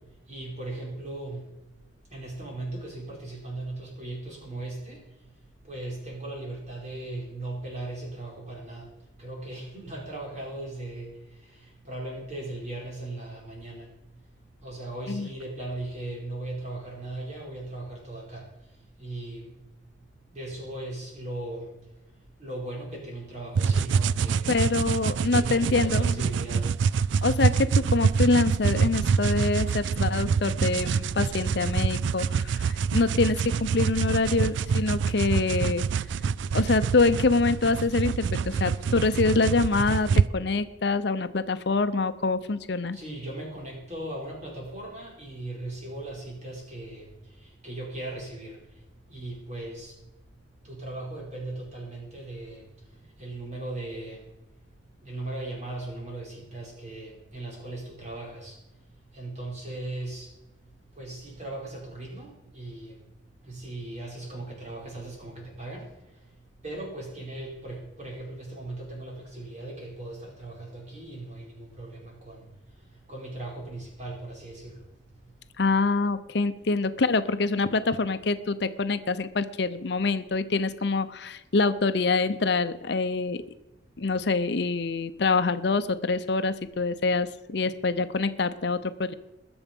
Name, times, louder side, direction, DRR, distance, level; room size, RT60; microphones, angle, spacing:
voice 1, 0.3-1.5 2.1-5.3 5.6-13.9 14.6-19.6 20.3-24.5 25.3-26.7 38.5-38.9 42.9-50.0 50.6-54.2 55.0-58.8 59.1-60.3 60.9-63.1 63.4-66.4 66.6-75.3, right 2 dB, 40° right, -2 dB, 5.0 m, -38 dB
sound 1, 23.6-40.3, right 6 dB, 75° right, 0.4 m, -26 dB
voice 2, 24.5-26.2 27.2-35.8 36.5-43.0 75.6-83.4 84.0-89.1, left 3 dB, 60° left, 11 dB, 0.7 m, -25 dB
21.0 x 7.0 x 5.3 m, 0.98 s
head